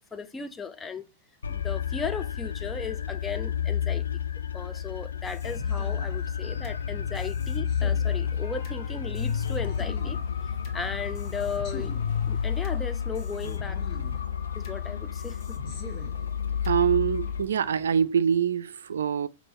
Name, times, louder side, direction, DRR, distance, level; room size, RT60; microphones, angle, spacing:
voice 1, 0.1-1.1 1.5-4.2 4.5-10.2 10.7-12.0 12.3-13.8 14.6-15.6, left 5 dB, 15° left, 0.5 m, -36 dB
sound 1, 1.4-17.4, left 7 dB, 85° left, 0.3 m, -30 dB
sound 2, 5.2-6.8 7.1-8.8 9.1-10.8 11.1-12.8 13.1-14.8 15.1-16.8, left 1 dB, 40° left, 1.4 m, -45 dB
sound 3, 8.1-18.1, left 1 dB, 60° left, 1.5 m, -50 dB
voice 2, 16.6-19.3, right 8 dB, 80° right, 0.3 m, -24 dB
4.5 x 2.7 x 3.0 m
hypercardioid pair, 115°, 0 cm